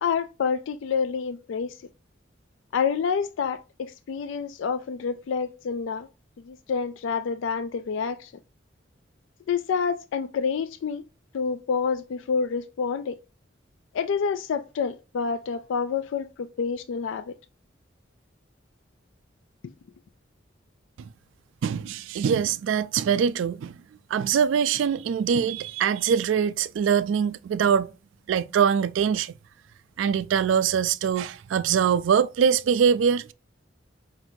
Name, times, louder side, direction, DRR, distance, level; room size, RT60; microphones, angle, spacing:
voice 1, 0.0-1.8 2.7-6.1 6.4-8.3 9.5-11.0 11.3-13.2 13.9-17.3 19.6-19.7, left 6 dB, 85° left, 0.3 m, -28 dB
voice 2, 21.6-23.8 24.1-27.9 28.3-29.3 30.0-33.3, right 7 dB, 90° right, 0.3 m, -23 dB
5.9 x 2.5 x 2.6 m
head